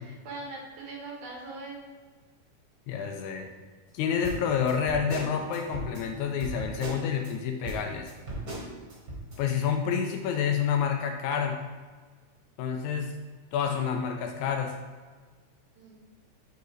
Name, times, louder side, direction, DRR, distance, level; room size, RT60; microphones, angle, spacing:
voice 1, 0.0-1.8 15.8-16.0, right 3 dB, 85° right, -2 dB, 2.9 m, -41 dB
voice 2, 2.9-3.5 3.9-8.1 9.4-11.6 12.6-13.2 13.5-14.7, left 7 dB, 80° left, 4 dB, 1.8 m, -28 dB
sound 1, 4.2-7.3 7.6-9.4, right 1 dB, 40° right, 1.5 m, -38 dB
8.1 x 4.6 x 3.1 m, 1.4 s
omnidirectional pair, 3.5 m